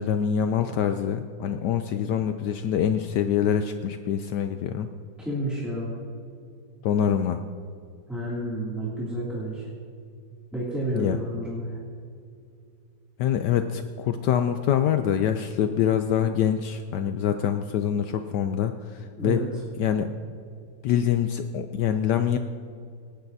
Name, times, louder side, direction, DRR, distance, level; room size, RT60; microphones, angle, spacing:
voice 1, 0.0-4.9 6.8-7.4 10.9-11.2 13.2-19.4 19.8-20.1 20.8-22.4, left 9 dB, 75° left, 7 dB, 1.1 m, -25 dB
voice 2, 5.2-6.0 8.1-9.7 10.5-11.8 19.2-19.5, right 1 dB, ahead, -8 dB, 2.3 m, -30 dB
26.5 x 9.1 x 2.7 m, 2.3 s
omnidirectional pair, 2.0 m